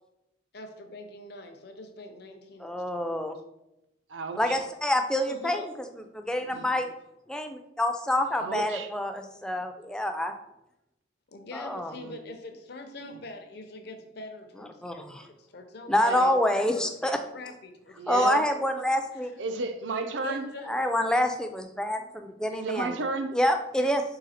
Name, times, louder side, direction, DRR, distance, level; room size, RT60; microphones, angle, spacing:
voice 1, 0.5-3.2 5.3-5.7 11.3-16.5 16.7-17.9 18.3-18.4 19.2-19.3 20.2-21.0 23.8-23.9, left 2 dB, 60° left, 5 dB, 0.6 m, -43 dB
voice 2, 2.6-3.3 4.4-5.7 6.1-6.9 7.3-10.3 11.5-11.9 14.6-15.3 15.9-17.2 18.1-19.3 20.7-23.0 23.3-24.0, left 1 dB, 5° left, 5 dB, 0.3 m, -27 dB
voice 3, 4.1-4.6 6.4-6.7 8.3-8.9 12.0-12.1 13.1-13.2 16.0-16.3 18.0-18.4 19.4-20.4 22.5-23.3, right 3 dB, 75° right, 8 dB, 0.5 m, -32 dB
3.9 x 3.2 x 4.2 m, 0.90 s
head